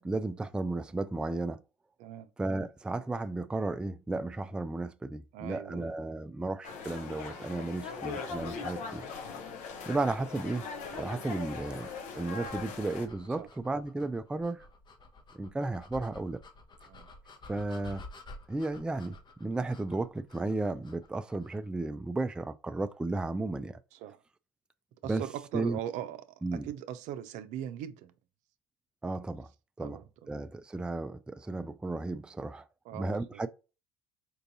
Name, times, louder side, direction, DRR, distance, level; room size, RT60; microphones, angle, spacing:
voice 1, 0.0-1.6 2.4-9.0 9.9-10.7 10.9-14.7 15.3-16.4 17.5-18.0 18.5-19.1 19.4-23.8 25.0-25.2 25.5-25.8 26.4-26.7 29.0-29.5 29.8-30.0 30.3-32.7 32.9-33.5, right 2 dB, 5° right, 0.3 m, -34 dB
voice 2, 5.3-5.9 13.4-13.5 16.9-17.1 23.9-24.2 25.0-26.2 26.5-28.1 29.8-30.0 32.9-33.4, right 11 dB, 65° right, 0.5 m, -40 dB
sound 1, 6.6-13.1, left 5 dB, 60° left, 0.9 m, -40 dB
sound 2, 9.8-21.7, left 2 dB, 35° left, 0.9 m, -52 dB
4.5 x 2.6 x 2.6 m
hypercardioid pair, 70°, 14 cm